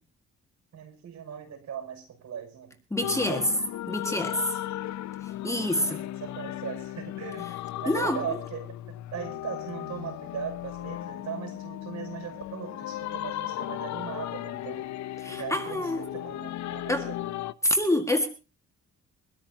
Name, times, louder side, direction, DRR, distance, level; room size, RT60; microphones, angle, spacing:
voice 1, 0.7-3.6 4.2-4.7 5.8-7.5 7.8-14.8 15.3-17.4, right 8 dB, 65° right, 6.1 m, -39 dB
voice 2, 2.9-3.4 3.9-4.4 5.4-6.0 7.9-8.2 15.2-16.0 16.9-17.1 17.6-18.3, left 1 dB, 10° left, 1.8 m, -26 dB
sound 1, 3.0-17.5, left 13 dB, 65° left, 0.6 m, -36 dB
23.5 x 13.0 x 2.8 m
cardioid pair, 90°, 30 cm